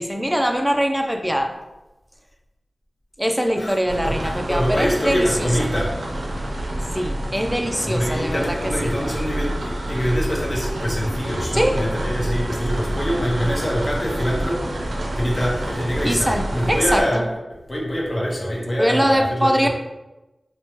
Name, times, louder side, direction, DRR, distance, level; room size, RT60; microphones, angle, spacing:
voice 1, 0.0-1.5 3.2-5.5 6.9-8.6 8.8-8.9 11.5-11.8 16.0-17.2 18.8-19.7, equal, 5° right, 4 dB, 0.3 m, -22 dB
voice 2, 3.6-6.1 7.8-14.6 15.2-17.2 17.7-19.5, equal, 35° left, -3 dB, 0.7 m, -24 dB
sound 1, 3.9-17.0, right 1 dB, 85° right, 0.4 m, -27 dB
3.0 x 2.1 x 2.9 m, 1.0 s
wide cardioid pair, 70°, 0 cm